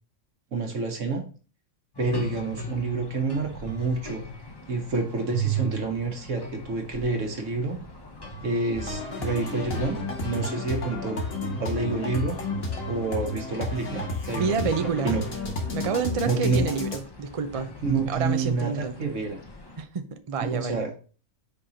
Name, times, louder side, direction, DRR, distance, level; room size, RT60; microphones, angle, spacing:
voice 1, 0.5-1.2 2.0-4.2 4.7-7.8 8.4-10.0 10.2-11.2 11.6-12.4 12.9-15.2 16.2-16.7 17.8-19.4 20.4-21.0, right 3 dB, 70° right, 1.7 m, -28 dB
sound 1, 1.9-19.8, right 3 dB, 20° left, 0.8 m, -39 dB
sound 2, 8.8-17.0, left 2 dB, 50° left, 1.5 m, -32 dB
voice 2, 14.3-15.2 15.7-19.1 19.8-20.9, right 5 dB, 40° right, 0.5 m, -29 dB
5.3 x 4.3 x 5.0 m
omnidirectional pair, 1.4 m